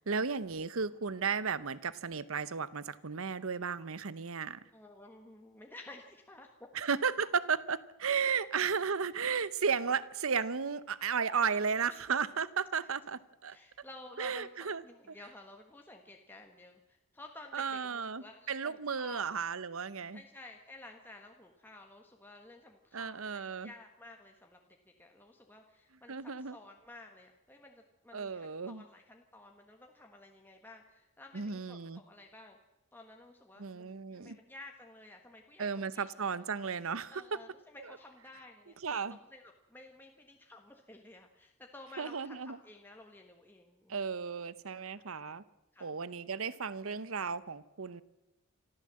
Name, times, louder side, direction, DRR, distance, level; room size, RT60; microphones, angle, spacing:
voice 1, 0.0-4.6 6.7-13.6 14.2-14.8 17.5-20.2 22.9-23.7 26.1-26.6 28.1-28.8 31.3-32.0 33.6-34.4 35.6-37.4 37.8-37.9 38.8-39.2 42.0-42.6 43.9-45.4 45.8-48.0, right 6 dB, 70° right, 17 dB, 0.9 m, -34 dB
voice 2, 4.6-6.5 11.9-12.0 13.5-14.5 14.8-19.3 20.1-32.6 32.9-36.1 37.1-38.8 39.0-44.0 44.7-45.0 45.7-45.9, left 2 dB, 10° left, 2 dB, 1.4 m, -53 dB
25.5 x 14.0 x 7.7 m, 0.98 s
head